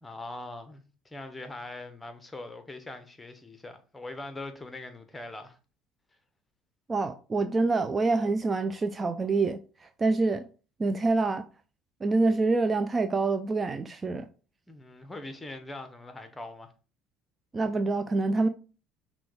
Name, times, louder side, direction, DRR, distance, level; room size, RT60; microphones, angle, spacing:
voice 1, 0.0-5.6 14.7-16.7, left 2 dB, 15° left, 0.9 m, -42 dB
voice 2, 6.9-9.6 10.0-10.5 10.8-11.4 12.0-14.3 17.5-18.5, right 3 dB, 25° right, 0.4 m, -26 dB
6.0 x 2.3 x 3.2 m
hypercardioid pair, 65°, 0 cm